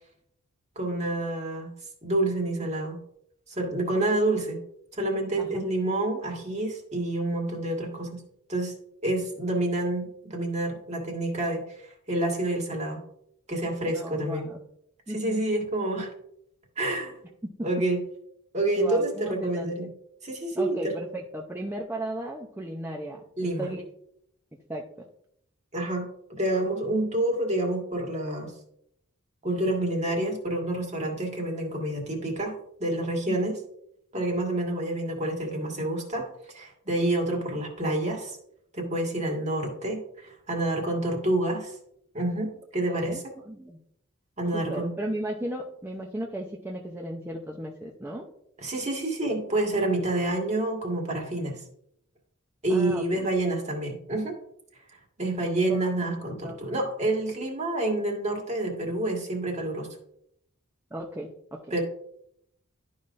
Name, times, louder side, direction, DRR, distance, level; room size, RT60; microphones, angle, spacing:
voice 1, 0.8-1.7 2.0-3.0 3.5-4.6 5.0-8.2 8.5-8.7 9.0-13.0 13.5-14.4 15.1-16.1 16.8-17.1 17.6-18.0 18.5-19.9 20.2-20.8 23.4-23.7 25.7-28.5 29.4-33.6 34.1-36.3 36.5-38.4 38.7-41.7 42.1-43.2 44.4-44.9 48.6-51.6 52.6-54.3 55.2-59.9 61.7-61.8, right 1 dB, 35° right, 1 dB, 1.8 m, -28 dB
voice 2, 5.4-5.7 13.9-14.6 15.1-15.4 18.8-19.9 20.5-23.8 24.7-24.8 33.3-33.4 42.8-43.8 44.5-48.3 52.7-53.3 55.7-56.6 60.9-61.7, right 1 dB, 10° right, -1 dB, 0.6 m, -36 dB
11.5 x 5.4 x 2.6 m, 0.72 s
head